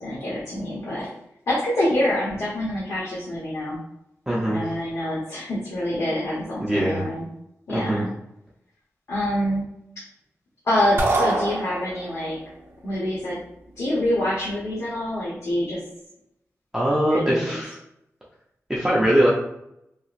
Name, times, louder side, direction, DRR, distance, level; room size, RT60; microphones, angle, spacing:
voice 1, 0.0-1.1 1.5-3.8 4.5-7.3 7.7-8.1 9.1-9.6 10.6-12.4 12.8-13.4 13.8-15.8 17.0-17.6, left 1 dB, 70° left, -6 dB, 0.9 m, -26 dB
voice 2, 4.3-4.7 6.6-7.0 7.7-8.1 16.7-17.8 18.7-19.3, right 1 dB, 5° right, -6 dB, 0.6 m, -21 dB
sound 1, 11.0-12.3, right 2 dB, 50° right, 0.6 m, -24 dB
2.9 x 2.8 x 2.4 m, 0.80 s
wide cardioid pair, 140°, 5 cm